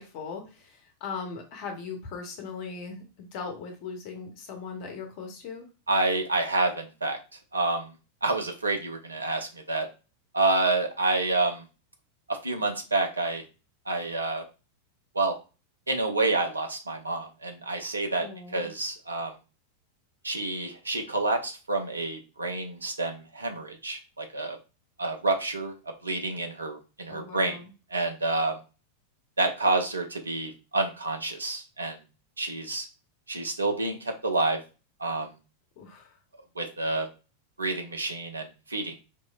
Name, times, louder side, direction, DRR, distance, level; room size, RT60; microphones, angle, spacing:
voice 1, 0.0-5.7 18.2-18.7 27.1-27.7 35.8-36.2, left 5 dB, 45° left, 4 dB, 0.8 m, -39 dB
voice 2, 5.9-7.2 7.5-7.9 8.2-9.9 10.3-11.6 12.3-13.4 13.9-14.4 15.1-15.3 15.9-18.3 18.5-19.3 20.2-24.6 25.0-25.7 26.0-27.6 27.9-28.6 29.4-32.0 32.4-32.9 33.3-34.6 35.0-35.3 36.6-37.1 37.6-39.0, right 2 dB, 75° right, 4 dB, 0.7 m, -28 dB
4.5 x 3.0 x 2.3 m, 0.32 s
figure-of-eight pair, 90°, 0 cm